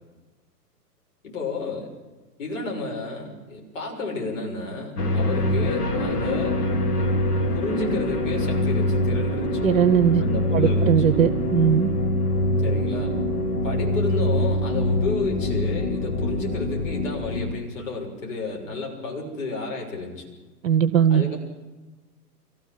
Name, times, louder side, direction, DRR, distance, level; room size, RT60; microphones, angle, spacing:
voice 1, 1.2-1.9 2.4-6.6 7.5-9.7 10.2-11.0 12.6-13.1 13.6-20.2 21.1-21.4, left 3 dB, 50° left, 0 dB, 6.6 m, -31 dB
sound 1, 5.0-17.5, left 1 dB, 70° left, 2.7 m, -24 dB
voice 2, 9.6-10.2 10.5-11.9 20.6-21.2, right 9 dB, 55° right, 12 dB, 0.9 m, -19 dB
23.5 x 16.0 x 7.9 m, 1.2 s
figure-of-eight pair, 115°, 48 cm